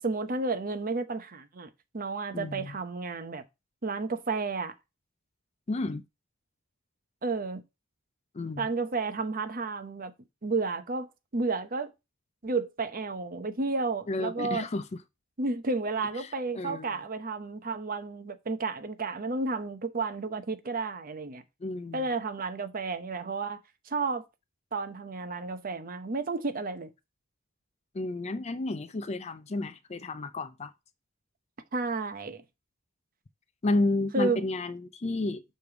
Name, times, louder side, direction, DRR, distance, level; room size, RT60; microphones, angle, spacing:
voice 1, 0.0-3.4 3.8-4.7 7.2-7.6 8.6-10.1 10.4-11.9 12.4-14.7 15.4-21.4 21.9-23.6 23.9-24.2 24.7-26.9 31.7-32.4 34.1-34.5, right 3 dB, 45° right, 0.8 m, -32 dB
voice 2, 2.3-2.8 5.7-6.0 8.3-8.7 14.1-14.8 16.2-16.3 16.5-16.9 21.6-22.0 27.9-30.7 33.6-35.4, left 2 dB, 30° left, 0.4 m, -31 dB
6.7 x 3.3 x 5.8 m
head